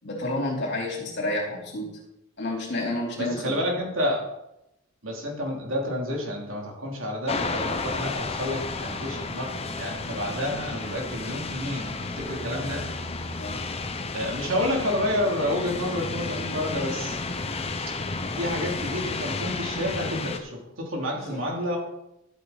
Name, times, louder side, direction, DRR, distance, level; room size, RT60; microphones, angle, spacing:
voice 1, 0.0-2.0 2.4-3.7 10.5-11.0 13.3-13.6 21.1-21.4, left 1 dB, 60° left, -2 dB, 3.9 m, -31 dB
voice 2, 3.2-4.3 5.0-12.8 14.1-17.2 18.3-21.8, left 1 dB, 75° right, -1 dB, 3.2 m, -29 dB
sound 1, 7.3-20.4, left 3 dB, 30° left, 0.9 m, -32 dB
12.5 x 8.6 x 4.1 m, 0.85 s
head